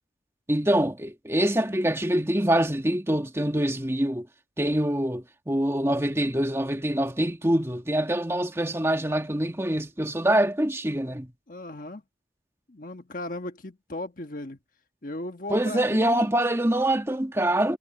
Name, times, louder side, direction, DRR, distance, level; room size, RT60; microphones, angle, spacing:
voice 1, 0.5-4.3 4.6-11.3 15.5-17.8, right 1 dB, 15° right, 1.4 m, -25 dB
voice 2, 11.5-12.0 12.7-14.6 15.0-16.3, left 1 dB, 50° left, 1.4 m, -36 dB
head